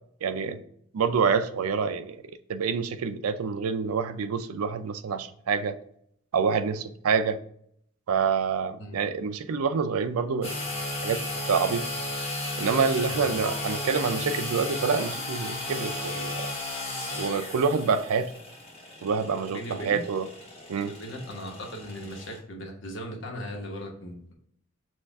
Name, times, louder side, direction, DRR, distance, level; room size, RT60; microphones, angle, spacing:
voice 1, 0.2-0.6 0.9-2.2 2.5-5.8 6.3-7.4 8.1-10.6 11.0-11.2 11.5-11.9 12.6-16.5 17.2-18.3 19.0-20.3 20.7-20.9, right 5 dB, 85° right, 11 dB, 0.4 m, -27 dB
sound 1, 10.4-22.4, left 1 dB, 30° left, 1.0 m, -34 dB
voice 2, 19.5-20.0 20.8-24.3, equal, 55° left, 1 dB, 1.1 m, -38 dB
6.2 x 2.4 x 3.4 m, 0.69 s
head